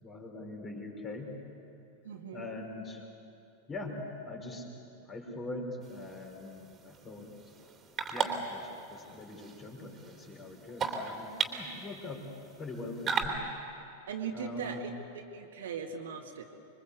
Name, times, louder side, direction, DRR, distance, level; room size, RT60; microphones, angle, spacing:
voice 1, 0.0-1.4 2.3-3.1 3.7-4.7 5.0-7.3 8.1-12.3 12.6-13.4 14.3-14.8, left 2 dB, 25° left, 1 dB, 5.2 m, -42 dB
voice 2, 2.0-2.4 14.1-14.9 15.3-16.4, right 6 dB, 60° right, 3 dB, 2.2 m, -39 dB
sound 1, 5.8-13.3, right 6 dB, 25° right, 3.3 m, -38 dB
26.5 x 23.5 x 8.4 m, 2.8 s
figure-of-eight pair, 90°, 0 cm